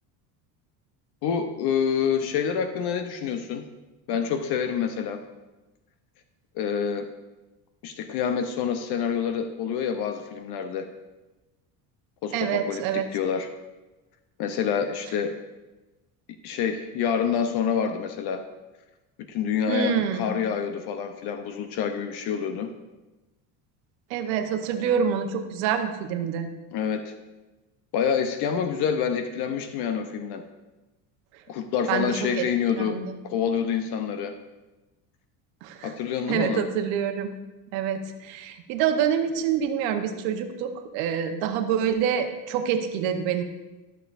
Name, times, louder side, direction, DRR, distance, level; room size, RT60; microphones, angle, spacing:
voice 1, 1.2-3.7 4.1-5.2 6.5-7.1 7.8-10.9 12.2-13.5 14.4-15.4 16.4-18.4 19.3-22.7 26.7-27.1 27.9-30.4 31.5-34.4 35.8-36.6, left 7 dB, 60° left, 7 dB, 0.8 m, -27 dB
voice 2, 12.3-13.1 19.7-20.3 24.1-26.5 31.9-32.5 32.8-33.2 35.6-35.9 36.3-37.3 37.7-43.4, right 8 dB, 75° right, 7 dB, 1.0 m, -26 dB
13.0 x 6.8 x 2.5 m, 1.1 s
supercardioid pair, 100°, 44 cm